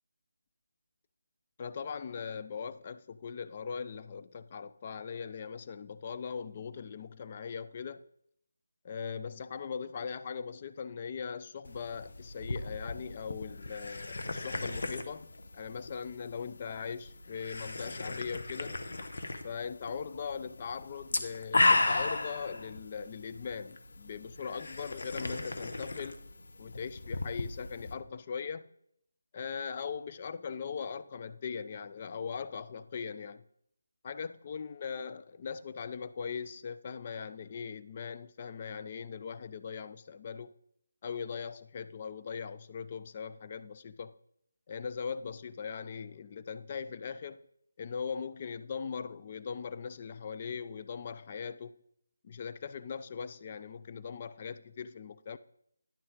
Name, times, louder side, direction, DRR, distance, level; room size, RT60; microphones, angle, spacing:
voice 1, 1.6-8.0 8.8-15.3 15.5-18.8 19.4-26.3 26.6-28.7 29.3-33.4 34.0-40.5 41.0-44.1 44.7-47.4 47.8-51.7 52.2-55.4, left 6 dB, 35° left, 0.3 m, -40 dB
sound 1, 11.6-27.9, left 2 dB, 60° left, 0.8 m, -35 dB
9.9 x 6.2 x 3.6 m
figure-of-eight pair, 155°, 0 cm